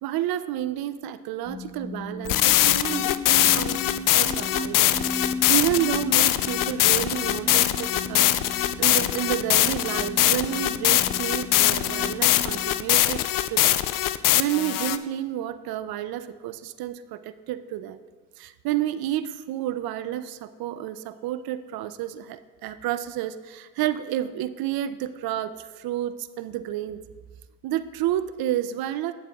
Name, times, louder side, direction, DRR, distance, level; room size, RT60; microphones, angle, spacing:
voice 1, 0.0-3.8 4.1-4.9 5.2-13.8 14.1-18.0 18.4-27.0 27.6-29.1, right 12 dB, 60° right, 14 dB, 0.6 m, -30 dB
sound 1, 1.5-13.6, left 2 dB, 25° left, 1.6 m, -36 dB
sound 2, 2.3-15.0, left 14 dB, 55° left, 0.5 m, -22 dB
11.5 x 9.0 x 2.4 m, 1.4 s
hypercardioid pair, 60°, 41 cm